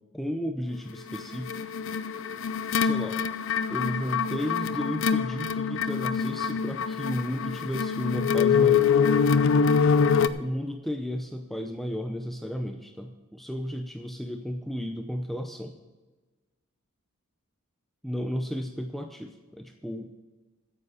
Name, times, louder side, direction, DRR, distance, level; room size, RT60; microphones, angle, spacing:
voice 1, 0.1-1.6 2.8-3.2 3.7-8.9 10.4-15.7 18.0-20.1, equal, ahead, 5 dB, 0.5 m, -33 dB
sound 1, 1.1-10.3, left 6 dB, 65° left, 0.5 m, -25 dB
9.5 x 7.7 x 8.1 m, 1.3 s
head